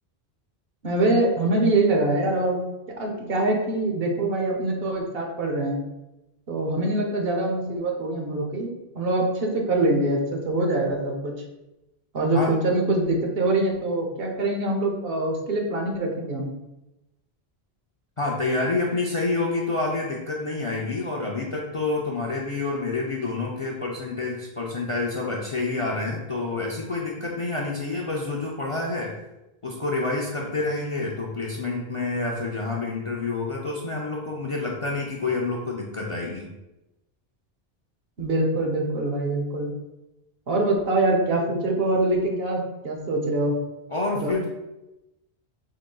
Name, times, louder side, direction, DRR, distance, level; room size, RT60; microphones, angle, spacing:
voice 1, 0.8-2.6 3.0-5.8 6.5-11.3 12.1-16.5 38.2-39.7 40.5-43.5 44.2-44.4, right 2 dB, 65° right, 1 dB, 1.0 m, -24 dB
voice 2, 18.2-29.2 29.6-36.5 43.9-44.4, left 3 dB, 45° left, -2 dB, 0.4 m, -28 dB
4.9 x 3.7 x 2.2 m, 0.96 s
omnidirectional pair, 1.1 m